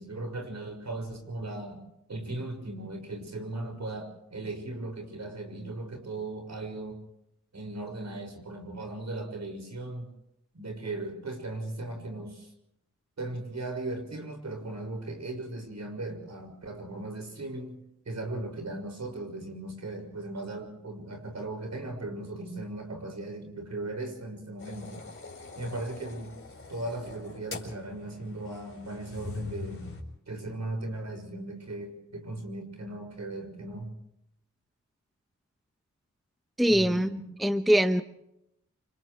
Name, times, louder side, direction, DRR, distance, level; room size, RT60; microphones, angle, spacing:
voice 1, 0.0-7.0 7.5-10.1 10.5-12.5 13.2-17.8 18.0-25.0 25.5-26.4 26.7-29.8 30.3-34.0 36.7-37.2 37.5-37.7, right 2 dB, 65° right, 3 dB, 6.2 m, -37 dB
sound 1, 24.6-30.0, left 4 dB, 45° left, 4.9 m, -43 dB
voice 2, 36.6-37.1 37.4-38.0, equal, ahead, 9 dB, 0.9 m, -22 dB
29.0 x 28.0 x 3.2 m, 0.82 s
wide cardioid pair, 90°, 30 cm